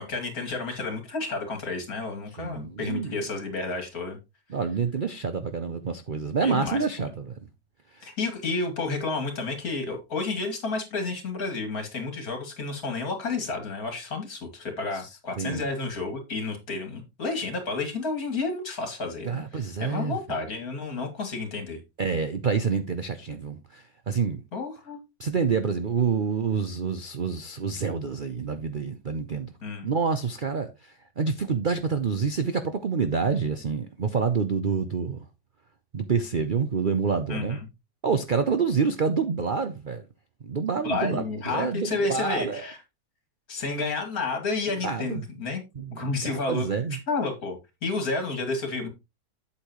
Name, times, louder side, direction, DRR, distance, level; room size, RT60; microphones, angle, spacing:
voice 1, 0.0-4.2 6.4-7.1 8.0-21.8 24.5-25.0 29.6-29.9 37.3-37.7 40.8-42.8 43.5-45.6 45.9-46.7 47.1-48.9, left 3 dB, 55° left, 2.8 m, -31 dB
voice 2, 2.4-3.2 4.5-7.4 7.9-8.1 14.9-15.1 15.4-15.7 19.3-20.4 22.0-24.4 25.2-29.5 29.8-35.2 35.9-37.6 38.0-40.0 40.4-42.7 44.7-45.2 45.8-47.0, right 5 dB, 60° right, 0.5 m, -27 dB
8.5 x 8.2 x 3.0 m
omnidirectional pair, 1.9 m